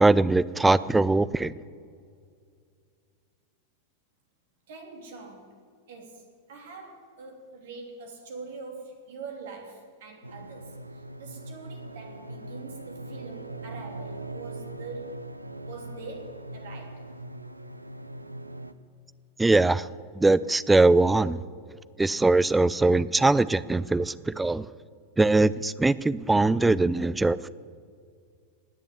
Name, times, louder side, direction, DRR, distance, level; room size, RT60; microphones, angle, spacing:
voice 1, 0.0-1.6 19.4-19.9 20.2-21.4 22.0-24.7 25.2-27.5, right 2 dB, 10° right, 18 dB, 0.4 m, -21 dB
voice 2, 4.7-5.6 5.9-15.3 15.7-17.1, right 4 dB, 60° right, 3 dB, 3.1 m, -44 dB
sound 1, 10.2-18.7, right 2 dB, 85° right, 0.7 m, -41 dB
19.5 x 7.0 x 9.2 m, 2.2 s
figure-of-eight pair, 90°, 0 cm